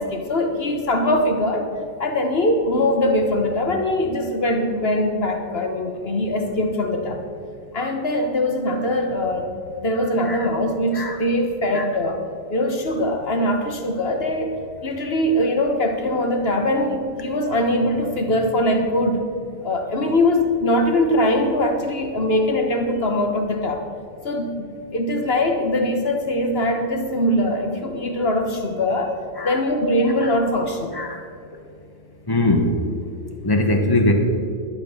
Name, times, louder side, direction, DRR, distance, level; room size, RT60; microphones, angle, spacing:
voice 1, 0.0-1.7 2.0-7.2 7.7-12.2 12.5-19.3 19.6-23.8 24.2-24.7 24.9-29.1 29.4-30.9, left 1 dB, 40° left, 5 dB, 1.0 m, -22 dB
voice 2, 32.3-32.7 33.4-34.1, left 2 dB, 20° left, 4 dB, 0.6 m, -20 dB
12.0 x 9.2 x 6.8 m, 2.3 s
omnidirectional pair, 2.3 m